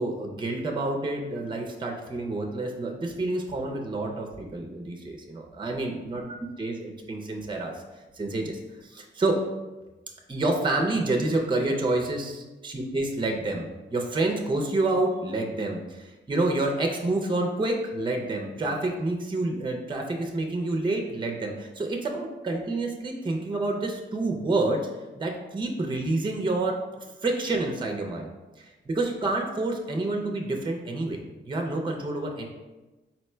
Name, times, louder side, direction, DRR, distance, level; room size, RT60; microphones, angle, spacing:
voice 1, 0.0-7.7 8.1-9.4 10.3-24.8 25.2-31.2 31.5-32.5, right 2 dB, 25° right, 2 dB, 0.5 m, -28 dB
4.2 x 2.1 x 4.3 m, 1.1 s
cardioid pair, 95°, 20 cm